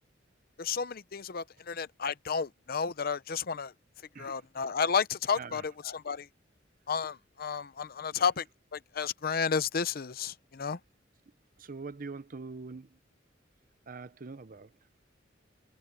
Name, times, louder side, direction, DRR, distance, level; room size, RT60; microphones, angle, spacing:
voice 1, 0.6-3.7 4.2-6.3 6.9-8.5 8.7-10.8, left 6 dB, 50° left, 0.6 m, -32 dB
voice 2, 5.3-5.7 11.6-13.0 13.9-14.7, right 4 dB, 45° right, 0.7 m, -43 dB
head